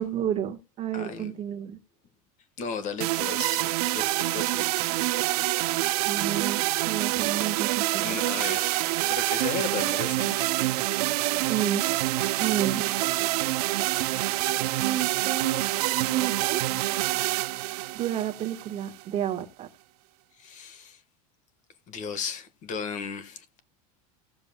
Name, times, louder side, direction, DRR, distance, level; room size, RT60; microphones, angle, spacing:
voice 1, 0.0-1.8 6.1-8.2 11.5-11.9 12.4-12.9 14.7-15.6 15.9-16.6 17.9-19.7, right 10 dB, 30° right, 1.2 m, -31 dB
voice 2, 0.9-1.4 2.6-4.8 5.2-5.4 8.0-10.5 20.4-21.0 21.9-23.6, left 5 dB, 40° left, 1.5 m, -35 dB
sound 1, 3.0-19.0, right 18 dB, 85° right, 0.7 m, -27 dB
18.5 x 7.0 x 2.2 m
supercardioid pair, 150°, 19 cm